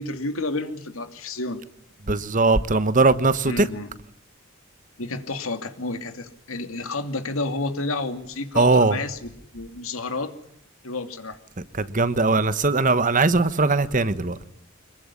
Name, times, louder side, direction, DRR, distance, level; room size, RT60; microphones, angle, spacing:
voice 1, 0.0-1.6 3.5-3.9 5.0-10.4 10.8-11.4, left 2 dB, 80° left, 2.7 m, -30 dB
voice 2, 2.1-3.7 8.5-9.0 11.6-14.4, right 3 dB, 40° right, 1.2 m, -20 dB
25.5 x 22.5 x 9.8 m
head